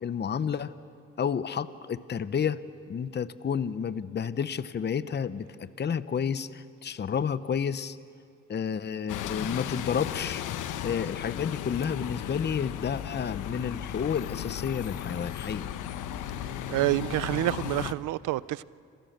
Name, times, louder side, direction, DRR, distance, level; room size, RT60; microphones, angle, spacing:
voice 1, 0.0-0.7 1.2-2.6 2.9-8.0 8.5-10.4 10.8-15.7, left 7 dB, 35° left, 0.9 m, -30 dB
Bus, 9.1-17.9, left 11 dB, 85° left, 1.1 m, -35 dB
voice 2, 16.7-18.6, right 16 dB, 85° right, 0.6 m, -28 dB
29.5 x 27.0 x 6.7 m
cardioid pair, 90°, 30 cm